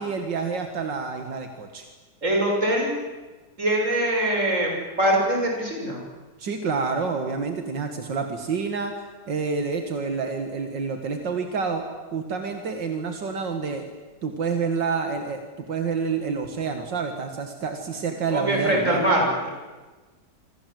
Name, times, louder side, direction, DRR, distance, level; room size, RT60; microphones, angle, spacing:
voice 1, 0.0-1.9 6.4-11.8 12.1-13.8 14.2-15.4 15.7-19.0, right 5 dB, 85° right, 5 dB, 2.6 m, -28 dB
voice 2, 2.2-3.0 3.6-6.0 18.3-19.5, right 1 dB, 45° right, 0 dB, 7.0 m, -23 dB
27.5 x 25.0 x 7.9 m, 1.3 s
omnidirectional pair, 1.9 m